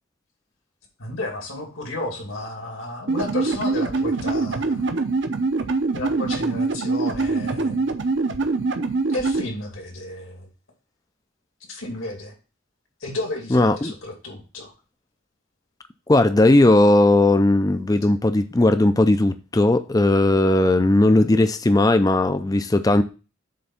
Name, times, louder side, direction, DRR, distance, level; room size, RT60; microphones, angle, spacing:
voice 1, 1.0-4.9 5.9-7.9 9.1-10.5 11.7-12.3 13.0-14.7, left 2 dB, 80° left, 2.4 m, -32 dB
sound 1, 3.1-9.4, right 3 dB, 60° right, 0.7 m, -24 dB
voice 2, 13.5-13.9 16.1-23.0, left 2 dB, 15° left, 0.4 m, -17 dB
7.6 x 3.5 x 5.5 m
head